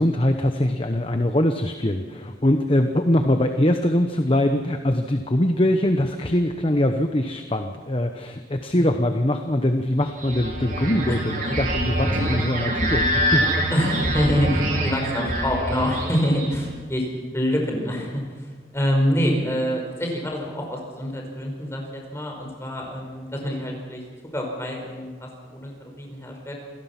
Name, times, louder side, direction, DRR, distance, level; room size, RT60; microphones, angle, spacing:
voice 1, 0.0-13.5, left 1 dB, 30° left, 6 dB, 1.0 m, -22 dB
sound 1, 10.1-16.7, equal, 50° right, 5.0 m, -25 dB
voice 2, 13.7-17.1 17.3-24.0 24.3-26.5, equal, 15° left, 1 dB, 5.1 m, -26 dB
27.5 x 17.0 x 6.0 m, 1.5 s
head